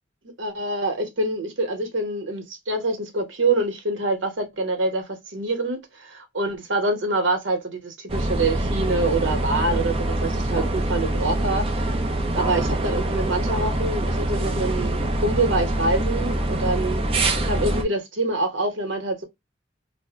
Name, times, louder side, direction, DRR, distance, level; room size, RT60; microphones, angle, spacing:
voice 1, 0.4-11.9 12.3-17.0 17.4-19.3, right 2 dB, 80° right, 1.1 m, -26 dB
sound 1, 8.1-17.8, right 1 dB, 30° right, 0.6 m, -24 dB
2.7 x 2.1 x 3.4 m
head